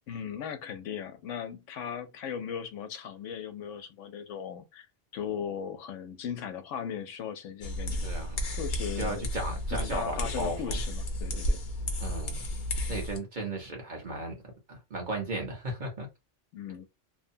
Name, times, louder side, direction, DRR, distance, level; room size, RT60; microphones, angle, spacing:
voice 1, 0.1-4.9 5.1-8.1 8.6-9.2 9.7-11.6 16.5-16.9, left 8 dB, 85° left, 0.9 m, -37 dB
sound 1, 7.6-13.2, left 1 dB, 50° left, 0.7 m, -32 dB
voice 2, 8.0-8.5 9.0-10.8 12.0-12.4 12.9-14.4 14.7-16.1, right 1 dB, 45° right, 1.0 m, -35 dB
2.8 x 2.1 x 2.6 m
omnidirectional pair, 1.2 m